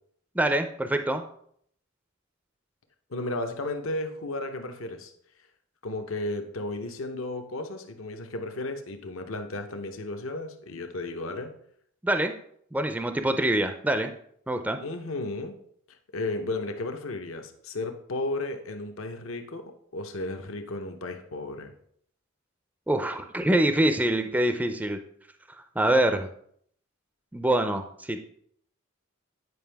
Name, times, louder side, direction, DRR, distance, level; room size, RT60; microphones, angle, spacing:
voice 1, 0.3-1.2 12.0-12.3 12.7-14.1 14.5-14.8 22.9-25.0 25.8-26.3 27.3-28.2, right 1 dB, 10° right, 7 dB, 0.4 m, -25 dB
voice 2, 3.1-5.1 5.8-11.5 14.8-15.5 16.1-21.7, left 2 dB, 70° left, 6 dB, 0.8 m, -34 dB
9.4 x 5.2 x 3.4 m, 0.65 s
head